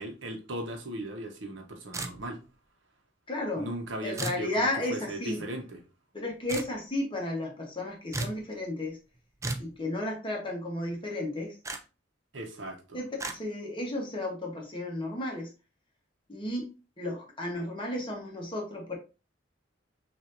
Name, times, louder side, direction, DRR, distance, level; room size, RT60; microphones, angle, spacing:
voice 1, 0.0-2.4 3.6-5.8 12.3-13.0, right 1 dB, 85° right, 1.0 m, -38 dB
sound 1, 1.9-2.5 4.2-4.5 6.5-6.7 8.1-8.4 9.4-9.7 11.6-11.8 13.2-13.4, right 3 dB, 15° right, 0.4 m, -34 dB
voice 2, 3.3-3.7 4.0-5.4 6.1-9.0 9.6-11.5 12.9-15.5 16.3-16.7 17.0-19.0, left 1 dB, 25° left, 1.1 m, -33 dB
5.9 x 2.7 x 2.6 m
head